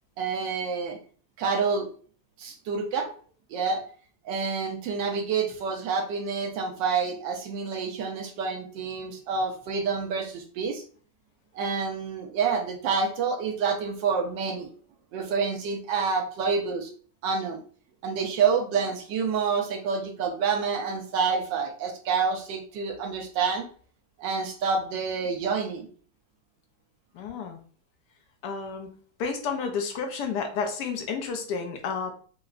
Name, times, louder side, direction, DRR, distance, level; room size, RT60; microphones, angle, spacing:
voice 1, 0.2-1.0 1.4-1.9 2.4-3.1 3.5-3.8 4.2-10.8 11.5-14.7 15.1-16.9 17.2-17.6 18.0-23.6 24.2-25.9, right 5 dB, 70° right, 2 dB, 1.2 m, -28 dB
voice 2, 27.1-27.6 28.4-28.9 29.2-32.1, left 5 dB, 70° left, 4 dB, 1.1 m, -31 dB
4.7 x 2.1 x 2.4 m, 0.43 s
omnidirectional pair, 2.2 m